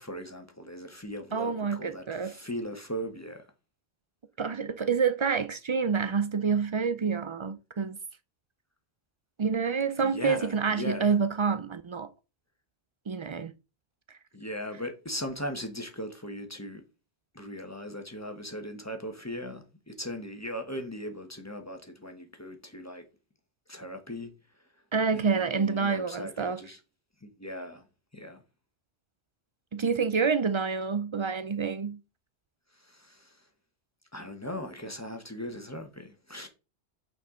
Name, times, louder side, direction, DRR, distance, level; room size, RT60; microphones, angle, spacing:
voice 1, 0.0-3.5 10.0-11.2 14.3-16.8 17.3-23.0 23.7-24.3 25.1-26.8 27.2-27.9 28.1-28.4 32.7-33.5 34.1-36.5, equal, 15° left, 1.1 m, -39 dB
voice 2, 1.3-2.3 4.4-8.0 9.4-12.1 13.1-13.5 24.9-26.6 29.7-32.0, right 5 dB, 50° right, 0.3 m, -28 dB
8.4 x 4.7 x 3.7 m
omnidirectional pair, 1.1 m